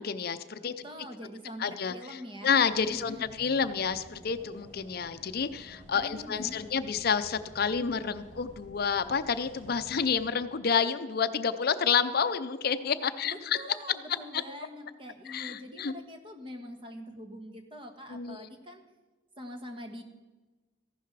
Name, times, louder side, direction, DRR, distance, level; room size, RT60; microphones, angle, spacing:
voice 1, 0.0-0.7 1.6-2.2 2.4-13.6 15.3-15.9 18.1-18.5, left 6 dB, 50° left, 11 dB, 0.5 m, -29 dB
voice 2, 0.8-2.5 2.9-3.4 6.0-6.8 13.2-18.8 19.4-20.0, equal, 25° right, 4 dB, 1.4 m, -44 dB
sound 1, 2.6-10.2, equal, 65° right, 4.3 m, -52 dB
15.0 x 11.5 x 4.7 m, 1.2 s
head